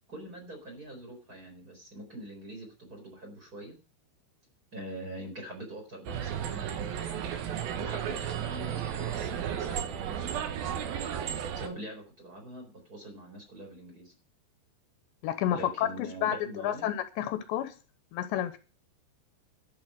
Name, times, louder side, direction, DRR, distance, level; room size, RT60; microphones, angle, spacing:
voice 1, 0.1-3.8 4.7-7.0 7.8-10.5 11.5-14.1 15.5-16.9, right 1 dB, 20° right, 4.3 m, -44 dB
sound 1, 6.1-11.7, right 9 dB, 65° right, 2.8 m, -34 dB
voice 2, 15.2-17.7 18.1-18.6, left 11 dB, 80° left, 3.2 m, -30 dB
12.0 x 6.9 x 7.5 m
omnidirectional pair, 5.2 m